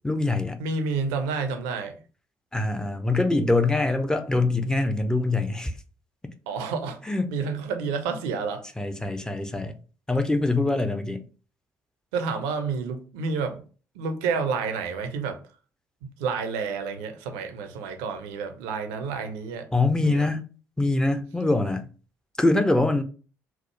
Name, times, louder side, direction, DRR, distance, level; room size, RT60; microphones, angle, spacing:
voice 1, 0.0-0.6 2.5-5.7 7.1-7.2 8.8-9.8 10.1-11.2 19.7-20.4 20.8-21.9 22.4-23.0, left 2 dB, 10° left, 0.5 m, -24 dB
voice 2, 0.6-2.0 6.5-7.0 7.3-8.6 12.1-13.6 13.9-15.4 16.2-19.7 20.0-20.3, right 5 dB, 70° right, 0.6 m, -29 dB
4.5 x 2.0 x 3.0 m
figure-of-eight pair, 45°, 9 cm